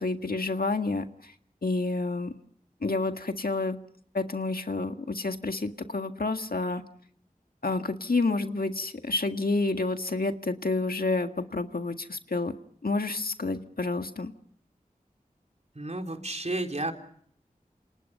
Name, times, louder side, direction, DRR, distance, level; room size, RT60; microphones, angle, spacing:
voice 1, 0.0-1.3 1.6-2.3 2.8-3.8 4.1-6.8 7.6-12.5 12.8-14.3, left 3 dB, 80° left, 6 dB, 1.8 m, -29 dB
voice 2, 15.8-16.9, right 2 dB, 45° right, 4 dB, 3.9 m, -32 dB
28.5 x 27.5 x 5.6 m, 0.62 s
wide cardioid pair, 50°, 15 cm